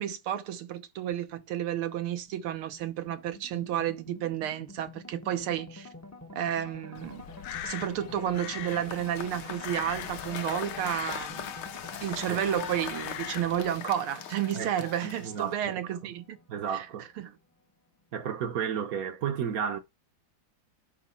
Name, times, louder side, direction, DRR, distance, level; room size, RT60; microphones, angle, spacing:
voice 1, 0.0-5.9 6.3-7.2 7.6-11.5 12.0-16.4 16.7-16.9 17.2-17.3, right 10 dB, 85° right, 1.8 m, -31 dB
sound 1, 1.1-17.5, left 2 dB, 15° left, 0.5 m, -48 dB
Crow, 7.0-13.8, left 12 dB, 80° left, 1.5 m, -43 dB
Cheering / Applause / Crowd, 8.6-15.7, left 9 dB, 65° left, 1.3 m, -40 dB
voice 2, 15.0-15.8 16.5-17.1 18.1-19.8, right 8 dB, 55° right, 1.1 m, -32 dB
10.5 x 4.6 x 4.2 m
omnidirectional pair, 2.3 m